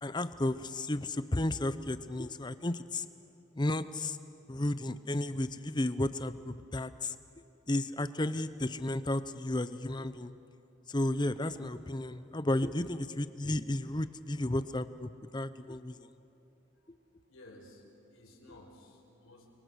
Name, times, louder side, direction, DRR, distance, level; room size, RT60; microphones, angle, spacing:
voice 1, 0.0-3.1 3.5-4.2 4.5-7.2 7.7-10.3 10.9-16.1, left 1 dB, 20° left, 13 dB, 0.6 m, -33 dB
voice 2, 17.3-17.8 18.1-19.5, left 1 dB, 80° left, -1 dB, 5.1 m, -55 dB
29.5 x 23.5 x 6.4 m, 2.7 s
head